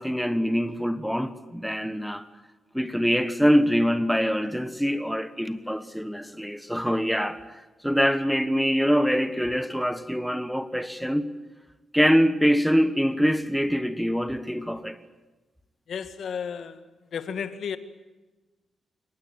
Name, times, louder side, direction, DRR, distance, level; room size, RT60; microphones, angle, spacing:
voice 1, 0.0-2.3 2.7-11.3 11.9-15.0, equal, ahead, 1.3 m, -24 dB
voice 2, 15.9-16.8 17.1-17.8, left 7 dB, 65° left, 1.8 m, -33 dB
25.5 x 20.0 x 8.9 m
wide cardioid pair, 140°, 0 cm